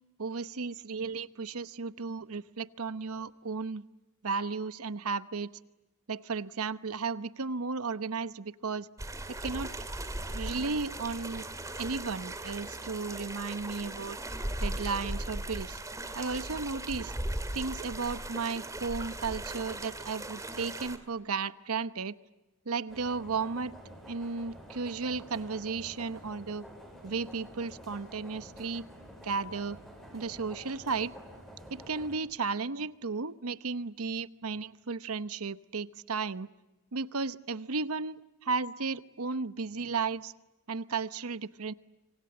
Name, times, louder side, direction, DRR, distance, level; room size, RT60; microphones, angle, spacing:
voice 1, 0.2-3.8 4.2-5.5 6.1-8.9 9.3-9.7 10.2-11.4 11.8-14.2 14.6-15.8 16.2-17.1 17.5-22.2 22.7-23.7 24.1-26.7 27.0-28.8 29.2-29.8 30.1-31.1 31.7-36.5 36.9-40.3 40.7-41.7, right 4 dB, 85° right, 14 dB, 0.9 m, -34 dB
sound 1, 9.0-21.0, right 1 dB, 15° right, 2.1 m, -38 dB
sound 2, 22.9-32.1, equal, ahead, 7.6 m, -49 dB
26.0 x 26.0 x 7.9 m, 1.0 s
head